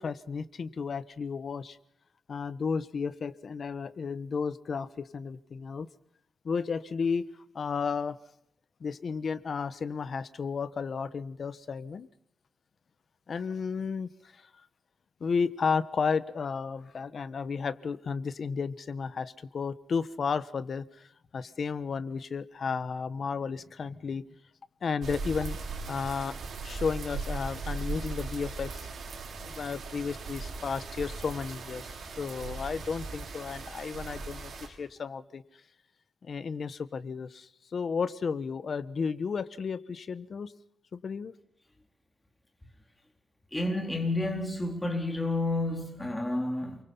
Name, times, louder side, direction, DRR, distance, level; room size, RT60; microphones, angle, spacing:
voice 1, 0.0-1.8 2.3-5.9 6.4-7.3 7.5-8.2 8.8-12.1 13.3-14.5 15.2-24.2 24.8-25.6 25.9-26.4 26.6-28.9 29.4-35.4 36.2-40.5 40.9-41.3, left 5 dB, 50° left, 1.3 m, -33 dB
sound 1, 25.0-34.7, right 3 dB, 65° right, 6.1 m, -38 dB
voice 2, 43.5-46.8, left 2 dB, 10° left, 4.2 m, -30 dB
28.5 x 23.5 x 5.6 m
wide cardioid pair, 145°, 0 cm